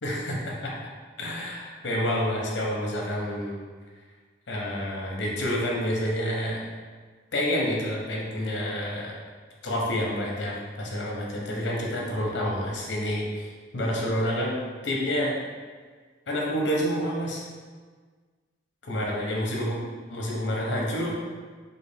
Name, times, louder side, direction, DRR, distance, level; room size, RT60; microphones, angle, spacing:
voice 1, 0.0-0.7 1.2-3.6 4.5-6.6 7.3-9.1 9.6-13.5 13.7-14.6 14.8-15.3 16.3-17.4 18.8-19.8 20.1-21.2, equal, 75° left, -2 dB, 0.8 m, -28 dB
3.7 x 2.3 x 3.4 m, 1.5 s
head